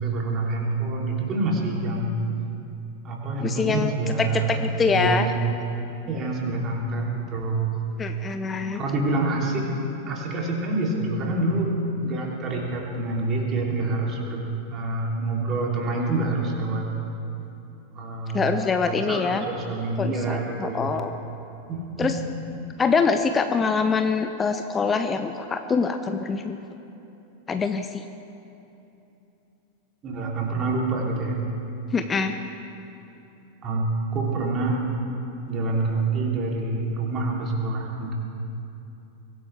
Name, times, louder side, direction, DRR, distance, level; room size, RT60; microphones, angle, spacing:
voice 1, 0.0-2.2 3.0-5.4 6.1-7.8 8.7-9.6 10.1-11.7 12.0-16.9 17.9-18.6 18.8-20.9 21.7-22.1 30.0-31.4 33.6-34.8 35.5-38.1, right 2 dB, 30° right, -1 dB, 3.1 m, -27 dB
voice 2, 3.4-3.9 4.2-5.3 8.0-8.8 18.3-19.5 20.0-21.1 22.0-22.1 22.8-26.6 27.5-28.0 31.9-32.3, left 5 dB, 20° left, 8 dB, 0.7 m, -24 dB
23.5 x 15.5 x 3.4 m, 2.9 s
figure-of-eight pair, 90°, 0 cm